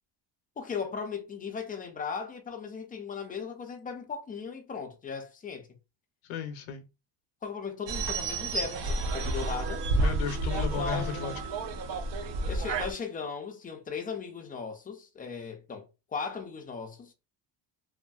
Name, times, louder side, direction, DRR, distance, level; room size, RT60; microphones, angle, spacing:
voice 1, 0.6-5.7 7.4-9.8 10.6-11.4 12.5-15.9 16.1-17.1, left 6 dB, 20° left, 0.4 m, -37 dB
voice 2, 6.2-6.9 10.0-11.4, left 6 dB, 80° left, 0.6 m, -35 dB
sound 1, 7.9-12.9, right 2 dB, 60° right, 0.7 m, -30 dB
2.7 x 2.5 x 2.2 m
cardioid pair, 135°, 49 cm